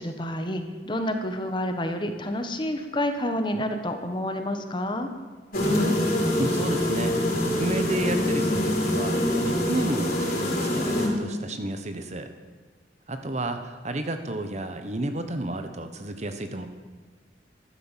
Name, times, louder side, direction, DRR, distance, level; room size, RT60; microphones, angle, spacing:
voice 1, 0.0-5.1, left 1 dB, 25° left, 7 dB, 1.3 m, -29 dB
sound 1, 5.5-11.1, left 1 dB, 55° left, 4.5 m, -25 dB
voice 2, 6.4-12.3 13.1-16.7, right 1 dB, 40° right, 8 dB, 1.2 m, -31 dB
14.0 x 11.5 x 7.4 m, 1.4 s
head